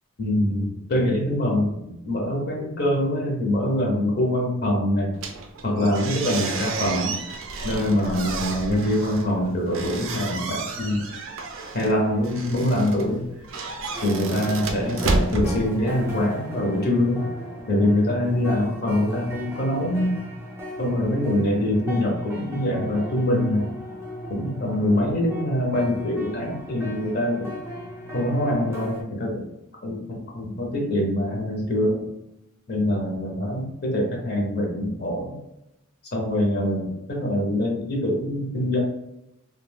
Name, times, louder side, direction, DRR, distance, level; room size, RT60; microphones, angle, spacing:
voice 1, 0.2-5.1 5.6-7.2 7.6-11.0 11.7-13.3 14.0-17.3 17.7-20.2 20.8-23.7 24.3-27.6 28.1-29.5 29.8-32.1 32.7-35.4 36.1-38.8, left 1 dB, 50° left, -1 dB, 0.7 m, -24 dB
sound 1, 5.1-16.3, right 3 dB, 65° right, 0.4 m, -31 dB
sound 2, 13.9-29.0, equal, 10° right, 0.5 m, -37 dB
2.3 x 2.2 x 3.2 m, 0.88 s
head